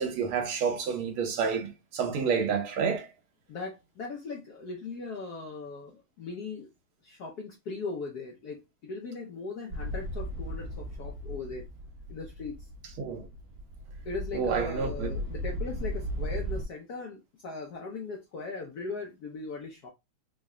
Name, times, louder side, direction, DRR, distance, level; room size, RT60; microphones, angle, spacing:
voice 1, 0.0-3.1 13.0-13.3 14.3-15.1, right 6 dB, 75° right, 1.8 m, -29 dB
voice 2, 3.5-6.7 7.0-11.7 12.1-12.7 14.0-19.9, left 3 dB, 70° left, 0.9 m, -39 dB
sound 1, 9.7-16.7, equal, 55° right, 1.1 m, -36 dB
3.9 x 2.2 x 3.6 m
omnidirectional pair, 2.4 m